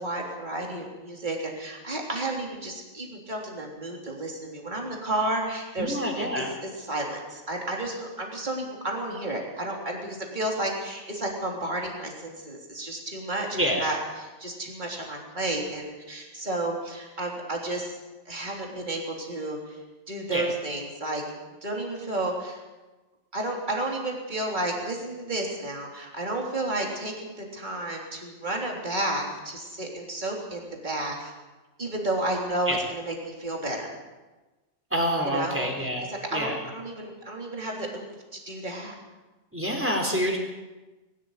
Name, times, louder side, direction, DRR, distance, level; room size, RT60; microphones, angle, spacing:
voice 1, 0.0-18.0 18.3-19.8 20.1-21.2 21.6-22.6 23.3-31.3 31.8-33.9 35.2-35.7 36.1-38.1 38.3-38.9, right 1 dB, 40° right, 0 dB, 3.7 m, -32 dB
voice 2, 5.8-6.5 13.5-13.9 20.3-20.4 32.7-32.8 34.9-36.6 39.5-40.4, equal, 10° right, 1 dB, 4.1 m, -27 dB
21.5 x 13.0 x 9.8 m, 1.2 s
omnidirectional pair, 1.2 m